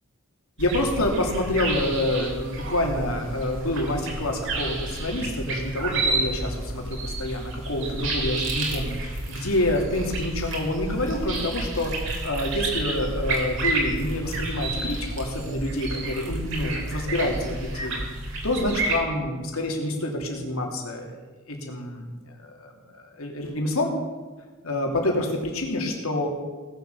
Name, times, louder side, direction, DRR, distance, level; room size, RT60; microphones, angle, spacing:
voice 1, 0.6-18.0 18.4-21.2 21.5-22.1 22.4-23.9 24.6-26.3, left 1 dB, 90° left, 1 dB, 2.8 m, -27 dB
sound 1, 0.6-19.0, right 2 dB, 60° right, 3.2 m, -30 dB
18.0 x 7.6 x 7.0 m, 1.3 s
head